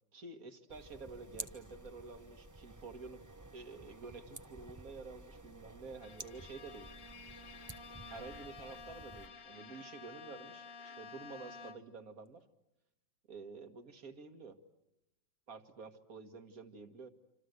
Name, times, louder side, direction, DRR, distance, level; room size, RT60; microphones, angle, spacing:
voice 1, 0.1-3.2 3.5-6.9 8.1-12.4 13.3-14.6 15.5-17.1, right 4 dB, 50° right, 8 dB, 2.1 m, -50 dB
sound 1, 0.7-9.3, right 2 dB, 15° right, 0.8 m, -52 dB
Bowed string instrument, 6.0-12.1, left 4 dB, 35° left, 1.3 m, -51 dB
27.0 x 26.5 x 8.2 m, 0.88 s
omnidirectional pair, 2.1 m